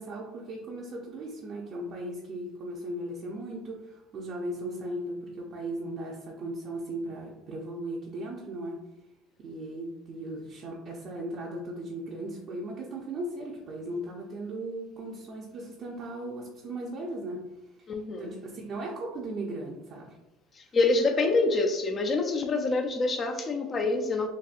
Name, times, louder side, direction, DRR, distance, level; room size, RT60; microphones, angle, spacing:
voice 1, 0.0-8.8 9.4-17.4 18.2-20.2, right 1 dB, 40° right, -4 dB, 0.6 m, -37 dB
voice 2, 17.9-18.3 20.5-24.3, left 3 dB, 30° left, 4 dB, 0.4 m, -26 dB
4.0 x 2.6 x 2.5 m, 0.95 s
cardioid pair, 130°, 0 cm